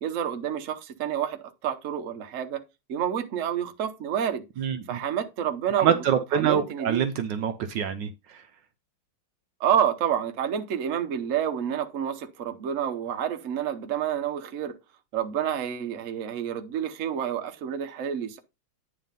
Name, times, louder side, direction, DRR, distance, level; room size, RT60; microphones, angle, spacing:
voice 1, 0.0-2.6 2.9-4.4 4.9-6.0 6.3-7.0 9.6-14.8 15.1-18.4, right 9 dB, 50° right, 1.0 m, -29 dB
voice 2, 4.6-5.0 5.8-8.4, right 8 dB, 70° right, 1.2 m, -26 dB
9.3 x 3.7 x 5.3 m
omnidirectional pair, 2.2 m